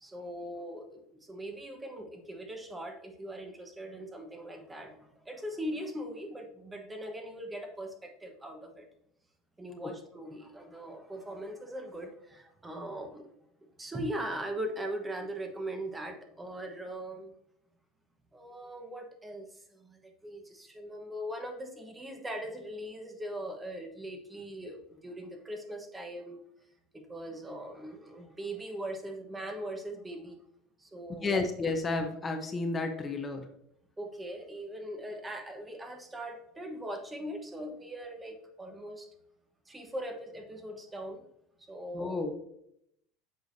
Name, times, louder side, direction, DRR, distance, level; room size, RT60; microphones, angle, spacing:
voice 1, 0.0-1.0 1.3-8.9 9.6-13.3 13.8-17.3 18.3-26.4 26.9-30.4 30.8-31.4 34.0-39.1 39.7-41.2 41.7-42.2, right 1 dB, 15° right, 4 dB, 1.1 m, -40 dB
voice 2, 31.2-33.5 41.9-42.3, left 3 dB, 25° left, 5 dB, 0.8 m, -31 dB
8.0 x 4.9 x 2.7 m, 0.75 s
supercardioid pair, 100°, 0 cm